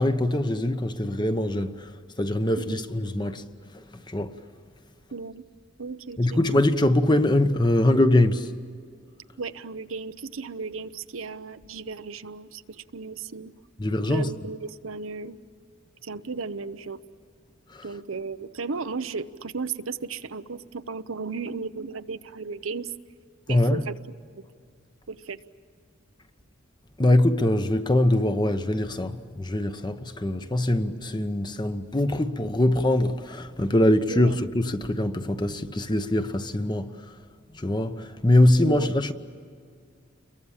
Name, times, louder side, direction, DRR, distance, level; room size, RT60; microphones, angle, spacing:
voice 1, 0.0-1.9 2.2-3.4 3.7-4.3 6.2-8.5 13.8-14.3 17.7-17.8 23.5-23.8 27.0-37.0 37.5-39.1, left 1 dB, 20° left, 1.0 m, -23 dB
voice 2, 5.1-5.4 5.8-6.4 9.4-13.5 14.1-15.4 16.0-17.0 17.8-22.9 23.5-24.0 25.1-25.4 34.1-34.4 38.6-38.9, right 4 dB, 85° right, 0.9 m, -35 dB
30.0 x 23.0 x 7.4 m
head